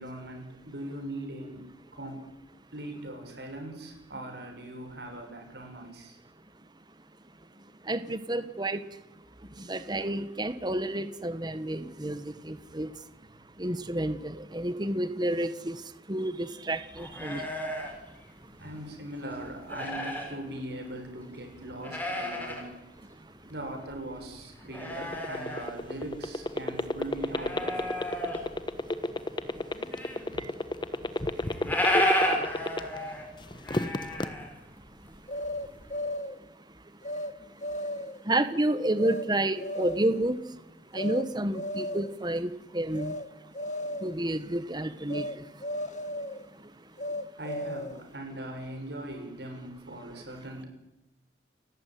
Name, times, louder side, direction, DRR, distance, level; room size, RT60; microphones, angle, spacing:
voice 1, 0.0-2.3 2.7-6.2 18.6-22.7 23.5-28.0 30.3-30.4 47.4-50.7, right 1 dB, 65° right, 4 dB, 7.1 m, -40 dB
voice 2, 7.5-13.1 13.6-18.6 23.0-23.5 28.2-30.5 30.9-31.5 31.8-32.1 32.9-33.8 34.1-34.5 34.8-47.3 50.1-50.2, right 1 dB, 25° right, 12 dB, 1.3 m, -33 dB
sound 1, 17.0-18.9 19.2-20.4 20.9-21.0 21.5-22.6 23.0-23.1 23.5-26.5 26.8-28.7 29.1-30.3 30.6-30.7 30.9-31.0 31.3-35.1 35.4-35.9, equal, 10° left, 5.4 m, -32 dB
sound 2, 24.9-33.1 33.5-34.3, left 1 dB, 25° left, 1.3 m, -29 dB
sound 3, 35.3-36.4 37.0-37.3 37.6-38.2 39.0-39.3 39.6-40.1 40.9-41.3 41.5-42.2 42.9-43.3 43.5-44.2 45.1-45.4 45.6-46.4 47.0-48.0, left 1 dB, 45° left, 1.4 m, -35 dB
30.0 x 15.0 x 9.4 m, 0.95 s
head